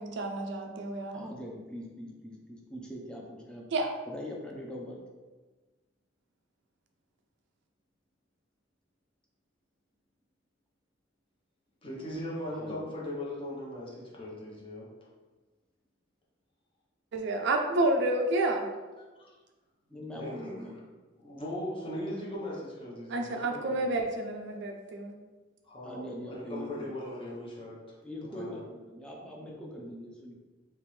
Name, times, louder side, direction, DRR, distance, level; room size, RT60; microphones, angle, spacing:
voice 1, 0.0-1.3 3.7-3.9 17.1-18.7 23.1-25.1, right 2 dB, 65° right, 3 dB, 0.4 m, -29 dB
voice 2, 1.1-3.6 4.1-5.0 12.6-12.9 19.9-20.8 25.8-26.9 28.0-30.3, equal, 5° left, -2 dB, 0.6 m, -42 dB
voice 3, 11.8-14.9 19.2-19.3 20.1-20.6 21.2-23.9 25.6-27.9 28.3-28.6, left 1 dB, 30° left, -5 dB, 0.9 m, -39 dB
3.4 x 2.9 x 3.2 m, 1.3 s
head